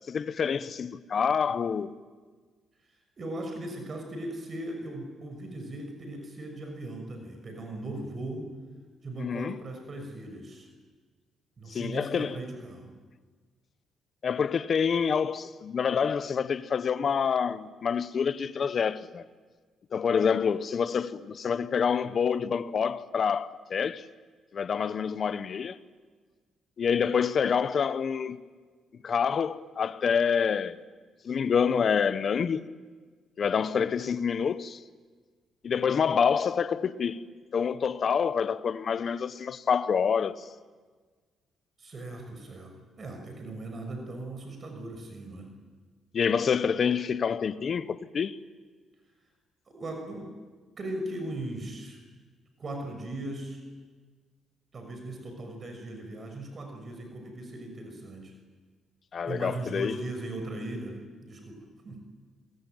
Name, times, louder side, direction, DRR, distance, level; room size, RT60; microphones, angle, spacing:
voice 1, 0.1-1.9 9.2-9.6 11.7-12.4 14.2-19.2 19.9-24.1 24.5-25.8 26.8-28.4 29.0-30.8 31.2-32.7 33.4-34.8 35.6-37.2 37.5-40.4 46.1-48.4 59.1-60.0, left 6 dB, 50° left, 1.1 m, -27 dB
voice 2, 2.9-8.5 9.0-10.7 11.6-13.0 41.8-45.6 49.7-50.3 50.8-52.0 52.6-53.6 54.7-58.3 59.2-62.0, right 1 dB, 40° right, 6.2 m, -38 dB
28.5 x 22.5 x 9.2 m
cardioid pair, 90°, 0 cm